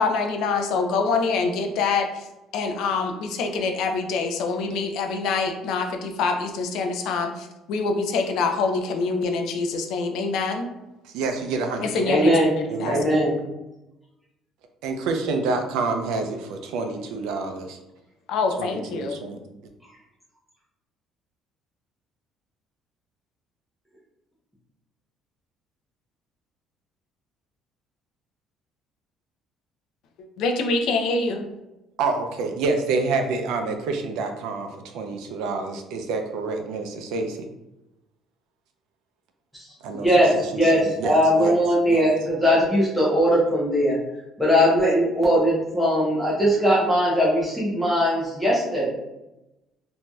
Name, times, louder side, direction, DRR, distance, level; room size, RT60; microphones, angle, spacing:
voice 1, 0.0-2.3 2.5-10.7 11.8-12.3 12.8-13.0 18.3-19.2 30.4-31.5, left 4 dB, 65° left, 5 dB, 0.3 m, -25 dB
voice 2, 11.0-12.1 12.7-13.1 14.8-17.8 18.6-19.4 32.0-37.4 39.8-40.1 40.5-41.6 41.9-42.0, right 3 dB, 85° right, 5 dB, 0.4 m, -28 dB
voice 3, 12.1-12.5 12.9-13.3 39.5-39.7 39.9-44.0 44.4-48.9, equal, 5° left, -7 dB, 0.6 m, -20 dB
3.0 x 2.6 x 2.2 m, 0.96 s
cardioid pair, 170°, 0 cm